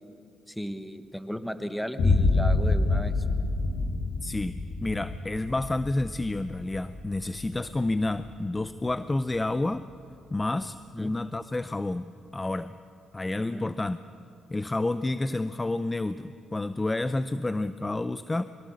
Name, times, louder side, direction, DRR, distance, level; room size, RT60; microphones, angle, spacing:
voice 1, 0.5-3.1 10.9-11.1 13.5-13.7, equal, ahead, 9 dB, 1.2 m, -35 dB
Boom, 2.0-9.8, left 3 dB, 65° left, 2.3 m, -28 dB
voice 2, 4.2-9.9 10.3-12.8 13.1-14.0 14.5-18.4, left 2 dB, 20° left, 13 dB, 0.5 m, -30 dB
23.5 x 22.0 x 6.5 m, 2.7 s
cardioid pair, 90°, 0 cm